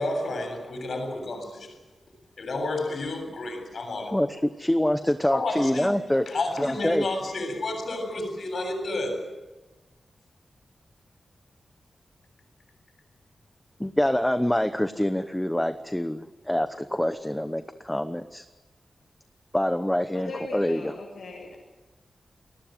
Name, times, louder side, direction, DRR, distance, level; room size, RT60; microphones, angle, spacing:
voice 1, 0.0-1.7 2.4-4.2 5.3-9.2, left 2 dB, 60° left, 7.7 m, -31 dB
voice 2, 4.1-6.3 6.6-7.0 13.8-18.4 19.5-20.9, left 1 dB, 5° left, 0.9 m, -25 dB
voice 3, 20.1-21.6, left 2 dB, 85° left, 7.5 m, -38 dB
30.0 x 20.5 x 7.9 m
wide cardioid pair, 170°, 0 cm